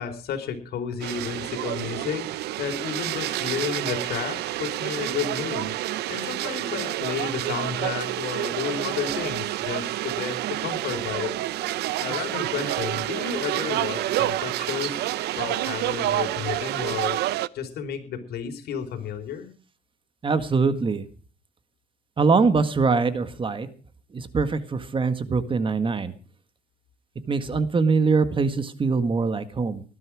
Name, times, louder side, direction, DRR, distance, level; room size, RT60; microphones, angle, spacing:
voice 1, 0.0-5.7 6.1-11.5 12.0-15.1 15.3-17.2 17.5-19.5, left 8 dB, 70° left, 6 dB, 4.2 m, -32 dB
sound 1, 1.0-17.5, right 15 dB, 75° right, 0.8 m, -28 dB
voice 2, 20.2-21.1 22.2-23.7 24.1-26.1 27.3-29.8, right 4 dB, 30° right, 11 dB, 1.8 m, -23 dB
19.5 x 12.5 x 4.9 m, 0.39 s
cardioid pair, 110°, 17 cm